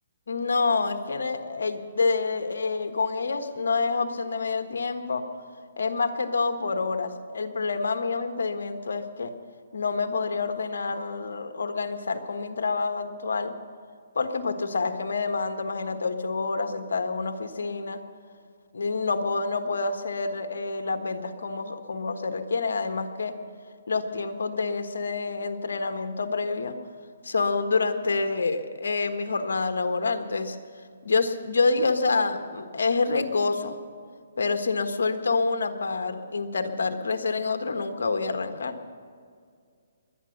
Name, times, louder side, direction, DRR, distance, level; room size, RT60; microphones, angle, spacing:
voice 1, 0.3-5.2 5.8-9.3 9.7-13.5 14.1-18.0 18.7-23.3 23.9-26.7 27.2-30.6 31.0-33.7 34.4-38.8, left 4 dB, 80° left, 7 dB, 1.4 m, -27 dB
22.0 x 9.6 x 6.6 m, 2.1 s
hypercardioid pair, 155°, 0 cm